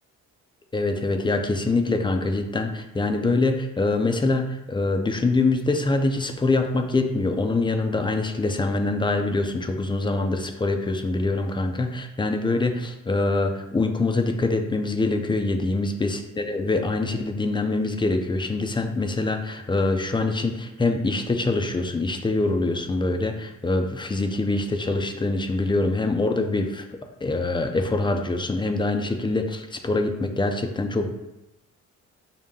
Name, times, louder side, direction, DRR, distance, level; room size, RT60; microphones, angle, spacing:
voice 1, 0.7-26.8 27.2-31.1, left 2 dB, 15° left, 5 dB, 0.4 m, -24 dB
5.3 x 2.1 x 3.6 m, 0.94 s
cardioid pair, 90°, 30 cm